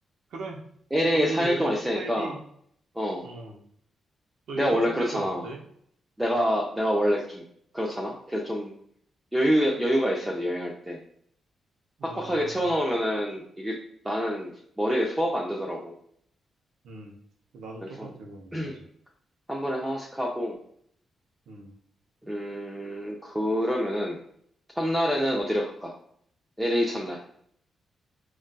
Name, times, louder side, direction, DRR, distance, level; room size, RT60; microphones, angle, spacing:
voice 1, 0.3-0.6 1.1-2.4 3.2-3.6 4.5-5.6 12.0-12.7 16.8-17.2 17.5-18.8 21.5-21.7, right 3 dB, 80° right, 2 dB, 0.6 m, -37 dB
voice 2, 0.9-2.3 3.0-3.2 4.6-5.4 6.2-7.4 7.7-8.7 9.3-11.0 12.0-13.8 14.0-14.5 14.8-15.9 18.0-18.1 18.5-18.7 19.5-20.6 22.3-24.2 24.8-25.9 26.6-27.2, equal, 10° right, -2 dB, 0.4 m, -26 dB
3.9 x 2.3 x 2.2 m, 0.66 s
cardioid pair, 130°, 0 cm